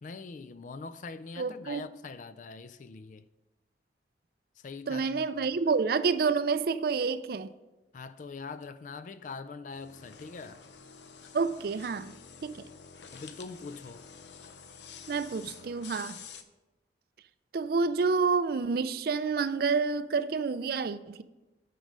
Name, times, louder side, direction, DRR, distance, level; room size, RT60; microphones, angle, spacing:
voice 1, 0.0-3.3 4.6-5.6 7.9-10.6 13.1-14.1, left 4 dB, 45° left, 0.3 m, -43 dB
voice 2, 1.4-1.9 4.9-7.5 11.3-12.1 12.4-12.6 15.1-16.2 17.5-21.2, right 4 dB, 55° right, 0.4 m, -28 dB
sound 1, 9.7-16.4, left 6 dB, 75° left, 0.7 m, -49 dB
9.3 x 5.0 x 5.4 m
head